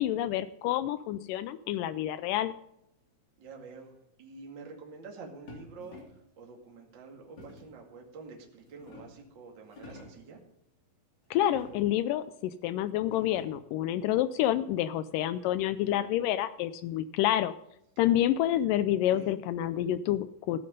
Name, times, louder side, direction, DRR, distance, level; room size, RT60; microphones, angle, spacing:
voice 1, 0.0-2.5 11.3-17.5 18.0-20.6, left 12 dB, 85° left, 14 dB, 1.9 m, -28 dB
voice 2, 3.4-3.9 4.2-6.0 6.4-10.4 19.1-19.3, right 4 dB, 35° right, 2 dB, 2.2 m, -47 dB
sound 1, 5.5-6.3 7.4-7.8 8.4-9.3 9.7-10.3 11.4-12.1 12.6-12.7 13.0-13.7 15.1-16.3, left 2 dB, 30° left, 3.3 m, -50 dB
14.5 x 7.9 x 5.3 m, 0.79 s
omnidirectional pair, 4.3 m